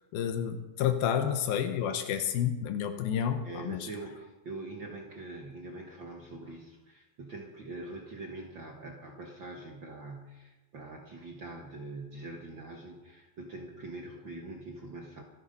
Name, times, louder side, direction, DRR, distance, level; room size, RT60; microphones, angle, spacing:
voice 1, 0.1-3.9, left 9 dB, 85° left, 7 dB, 2.8 m, -30 dB
voice 2, 3.4-15.2, right 2 dB, 50° right, 1 dB, 1.5 m, -43 dB
25.5 x 9.0 x 5.5 m, 1.1 s
omnidirectional pair, 4.1 m